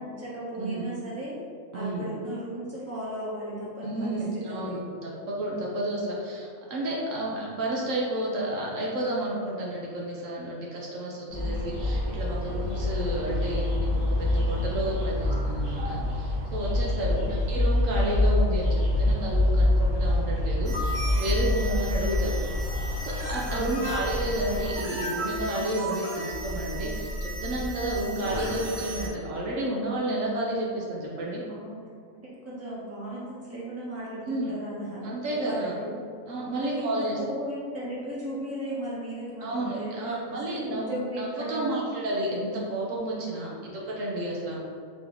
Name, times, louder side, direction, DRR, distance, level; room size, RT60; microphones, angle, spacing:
voice 1, 0.0-1.4 1.7-4.8 11.3-11.6 16.8-17.3 23.4-23.8 31.5-31.8 32.1-35.1 35.4-35.9 36.5-40.2 40.5-41.8, equal, 10° right, -8 dB, 1.1 m, -36 dB
voice 2, 1.7-2.0 3.8-22.3 23.0-31.4 34.3-34.5 35.0-35.8 36.3-37.2 39.4-44.6, right 1 dB, 75° right, -3 dB, 1.1 m, -31 dB
sound 1, 11.3-24.7, left 1 dB, 30° right, 1.4 m, -26 dB
sound 2, 20.6-29.1, right 1 dB, 50° right, 1.2 m, -34 dB
4.0 x 3.0 x 3.8 m, 2.3 s
omnidirectional pair, 1.4 m